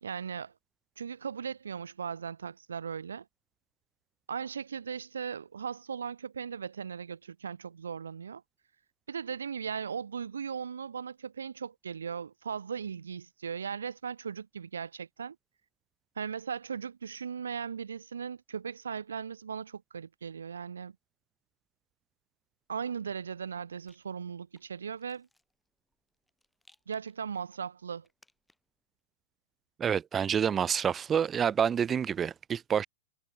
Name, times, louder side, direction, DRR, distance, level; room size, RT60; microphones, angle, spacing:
voice 1, 0.0-0.5 1.0-3.3 4.3-8.4 9.1-15.4 16.2-21.0 22.7-25.3 26.9-28.1, right 6 dB, 80° right, 0.5 m, -38 dB
Rattle, 23.5-28.8, left 2 dB, 5° left, 5.5 m, -70 dB
voice 2, 29.8-32.8, right 8 dB, 20° right, 0.4 m, -28 dB
hypercardioid pair, 105°, 0 cm